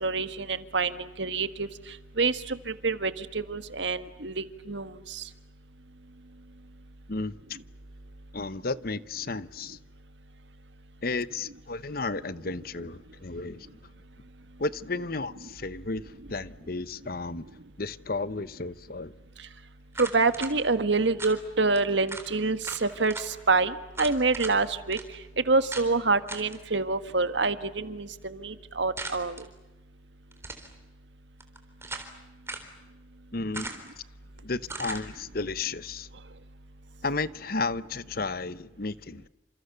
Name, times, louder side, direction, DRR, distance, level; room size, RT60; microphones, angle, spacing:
voice 1, 0.0-1.7 2.2-5.2 20.0-25.0 25.5-29.4, right 3 dB, 70° right, 1.6 m, -27 dB
voice 2, 7.1-7.6 8.3-9.8 11.0-13.7 14.6-17.5 17.8-19.1 33.3-33.7 34.4-36.1 37.0-39.3, left 3 dB, 50° left, 0.9 m, -33 dB
sound 1, 19.9-20.5 21.2-21.4 21.8-21.9 22.1-22.3 22.6-23.3 23.9-24.6 24.9-25.0 25.7-25.9 26.3-26.6 29.0-29.4 30.3-30.7 31.4-32.1 32.5-32.7 33.5-34.0 34.7-35.0, right 3 dB, 15° right, 3.8 m, -38 dB
30.0 x 28.0 x 6.8 m
head